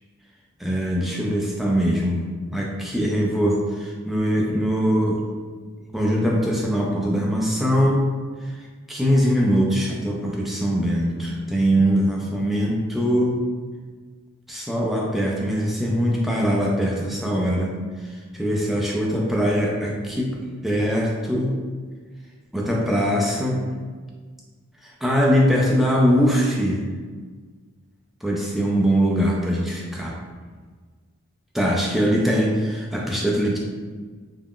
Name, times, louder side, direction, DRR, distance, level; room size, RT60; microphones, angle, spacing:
voice 1, 0.6-2.2 2.5-5.2 5.9-8.1 8.4-8.5 8.9-13.4 14.5-17.7 18.3-20.4 20.6-21.6 22.5-23.6 24.8-26.8 28.2-30.2 31.5-33.6, equal, ahead, -3 dB, 0.3 m, -22 dB
2.4 x 2.1 x 3.5 m, 1.5 s
head